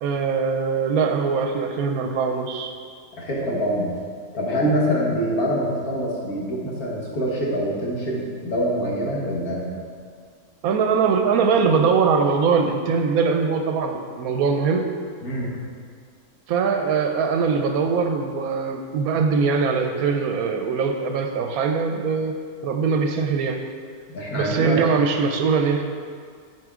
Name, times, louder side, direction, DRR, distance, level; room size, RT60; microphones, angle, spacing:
voice 1, 0.0-2.7 10.6-14.9 16.5-22.4 22.6-23.6 24.3-25.8, right 5 dB, 75° right, 5 dB, 1.0 m, -22 dB
voice 2, 3.2-3.9 4.3-9.7 15.2-15.5 24.1-24.8, equal, 70° left, -4 dB, 1.8 m, -25 dB
9.2 x 4.8 x 3.6 m, 2.1 s
omnidirectional pair, 1.6 m